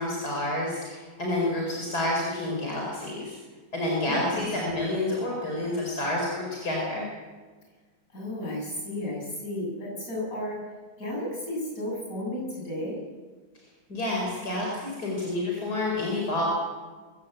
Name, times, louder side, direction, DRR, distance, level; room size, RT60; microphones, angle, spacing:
voice 1, 0.0-3.4 3.7-7.1 13.9-16.4, left 1 dB, 80° left, -2 dB, 5.3 m, -29 dB
voice 2, 4.1-4.5 8.1-10.6 11.0-13.0, left 1 dB, 60° left, -3 dB, 8.4 m, -33 dB
23.5 x 16.5 x 8.1 m, 1.4 s
omnidirectional pair, 1.6 m